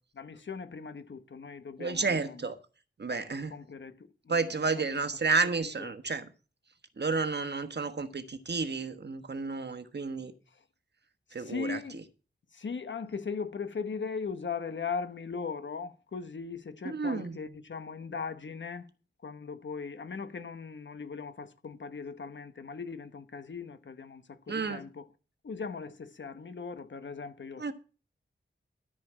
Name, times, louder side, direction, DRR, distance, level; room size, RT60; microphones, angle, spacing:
voice 1, 0.1-2.5 3.1-3.2 3.5-5.2 5.8-5.9 10.5-10.6 11.4-12.0 12.5-18.9 19.2-25.1 25.4-27.7, left 5 dB, 70° left, 1.1 m, -39 dB
voice 2, 1.8-2.6 3.0-3.5 4.3-6.3 7.0-10.3 11.3-11.8 16.8-17.4 24.5-24.8 27.6-27.7, right 4 dB, 60° right, 1.3 m, -31 dB
13.5 x 5.1 x 7.4 m
wide cardioid pair, 80°, 20 cm